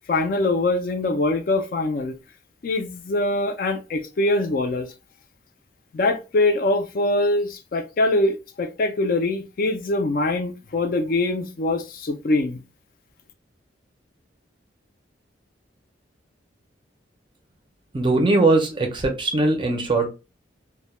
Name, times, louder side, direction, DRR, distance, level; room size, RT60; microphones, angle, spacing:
voice 1, 0.1-2.1 2.6-4.9 5.9-12.6, left 2 dB, 50° left, 0.4 m, -23 dB
voice 2, 17.9-20.1, right 2 dB, 25° right, 0.4 m, -20 dB
2.1 x 2.1 x 2.9 m
head